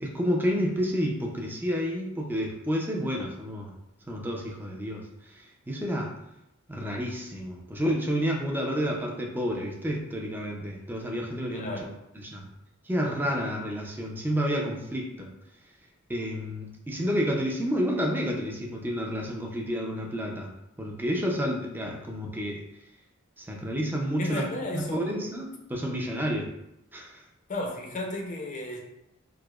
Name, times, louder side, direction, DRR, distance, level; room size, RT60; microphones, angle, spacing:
voice 1, 0.0-3.7 4.1-5.1 5.3-6.1 6.7-11.7 12.3-12.4 12.9-15.3 16.1-20.5 20.8-22.6 23.4-26.5 26.9-27.1, equal, 10° right, 0 dB, 0.4 m, -30 dB
voice 2, 11.5-12.0 24.2-25.4 27.5-28.8, left 1 dB, 40° left, 0 dB, 0.6 m, -34 dB
4.7 x 2.0 x 2.3 m, 0.84 s
head